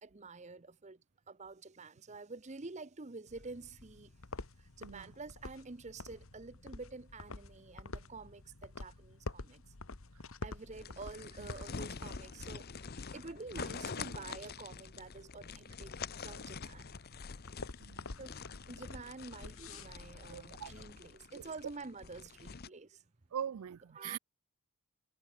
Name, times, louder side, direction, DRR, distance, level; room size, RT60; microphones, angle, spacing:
voice 1, 0.0-1.0 1.3-4.1 4.6-9.6 10.4-12.7 13.1-16.0 16.2-16.9 18.2-18.4 18.7-23.0 23.9-24.2, right 3 dB, 30° right, 0.8 m, -48 dB
sound 1, 3.3-20.9, left 3 dB, 70° left, 1.5 m, -50 dB
voice 2, 4.8-5.1 10.1-10.2 17.8-18.1 20.3-20.7 21.3-21.4 23.3-24.2, right 9 dB, 85° right, 0.4 m, -42 dB
sound 2, 10.7-22.7, left 5 dB, 45° left, 0.8 m, -46 dB
head